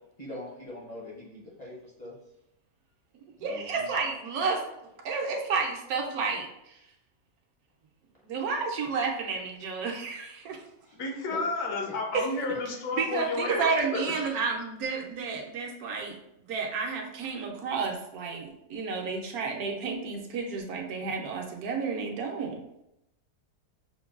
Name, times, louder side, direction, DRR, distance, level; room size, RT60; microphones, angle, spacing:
voice 1, 0.2-2.1 3.4-3.9 10.8-11.0 11.3-11.4 11.8-11.9 12.5-12.6 14.1-14.2, left 1 dB, 40° left, -6 dB, 0.6 m, -42 dB
voice 2, 3.1-4.6 5.0-6.8 8.2-10.7 12.1-12.3 12.9-16.2 16.4-22.6, right 4 dB, 75° right, 1 dB, 1.1 m, -31 dB
voice 3, 10.9-13.6 13.9-14.0, left 3 dB, 75° left, 1 dB, 1.2 m, -31 dB
5.8 x 2.2 x 2.4 m, 0.85 s
omnidirectional pair, 1.6 m